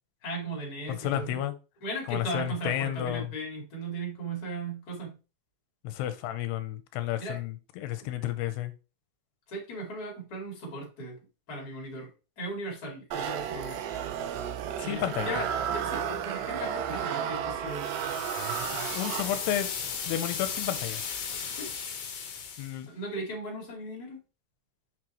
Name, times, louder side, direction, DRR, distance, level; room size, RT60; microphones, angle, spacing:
voice 1, 0.2-1.4 1.8-5.1 7.2-7.4 9.5-11.2 11.5-12.1 12.4-13.8 14.8-17.9 21.5-21.7 22.8-24.2, right 1 dB, 30° left, 2.2 m, -37 dB
voice 2, 0.9-1.5 2.1-3.3 5.8-8.7 14.8-15.3 18.9-19.7 20.1-21.0 22.6-22.9, left 12 dB, 90° left, 2.7 m, -31 dB
sound 1, 13.1-19.7, right 8 dB, 85° right, 3.0 m, -33 dB
sound 2, 17.7-22.8, left 6 dB, 60° left, 2.1 m, -36 dB
6.5 x 6.1 x 3.1 m
omnidirectional pair, 4.7 m